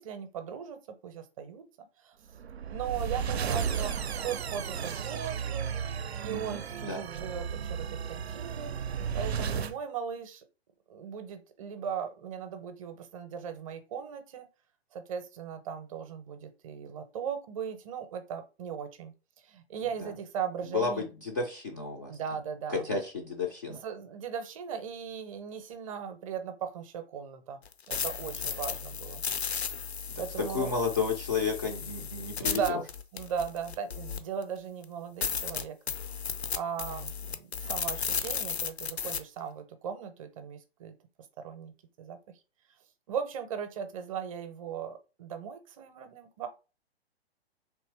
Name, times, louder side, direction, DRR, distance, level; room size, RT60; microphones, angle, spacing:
voice 1, 0.0-2.2 2.7-3.9 4.2-5.8 6.2-8.7 9.1-10.4 10.9-14.5 14.9-19.1 19.4-21.1 22.1-22.9 23.7-29.2 30.2-30.8 32.4-32.9 33.1-35.8 36.5-40.9 41.4-41.7 42.0-42.2 43.1-46.5, right 7 dB, 30° right, 8 dB, 0.6 m, -38 dB
sound 1, 2.4-9.8, right 7 dB, 75° right, 0.5 m, -34 dB
voice 2, 6.3-7.0 20.0-20.1 20.7-22.2 22.7-23.8 30.5-32.8, left 4 dB, 20° left, -1 dB, 0.3 m, -32 dB
sound 2, 27.6-34.4 34.8-34.9 35.2-39.2, left 6 dB, 75° left, 0.6 m, -34 dB
3.4 x 2.8 x 3.2 m, 0.31 s
figure-of-eight pair, 120°, 32 cm